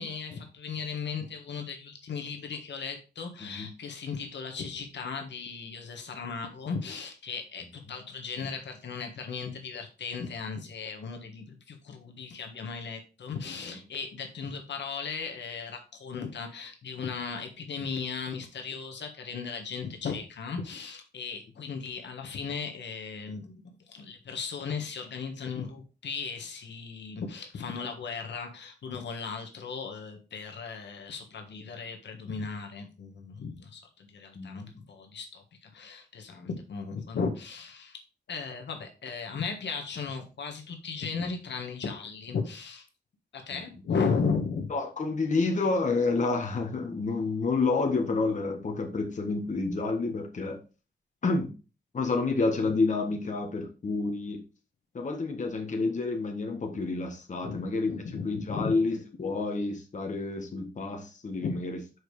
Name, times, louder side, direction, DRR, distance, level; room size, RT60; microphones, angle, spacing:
voice 1, 0.0-23.6 23.9-38.0 38.3-42.9 43.3-44.7 52.6-52.7 57.4-58.7 61.4-61.6, left 5 dB, 85° left, 3 dB, 1.4 m, -36 dB
voice 2, 34.3-34.7 43.5-43.6 44.7-50.6 51.2-51.5 51.9-54.4 54.9-57.9 58.2-61.8, left 3 dB, 45° left, 2 dB, 1.6 m, -29 dB
6.4 x 5.1 x 4.8 m, 0.32 s
wide cardioid pair, 160°, 18 cm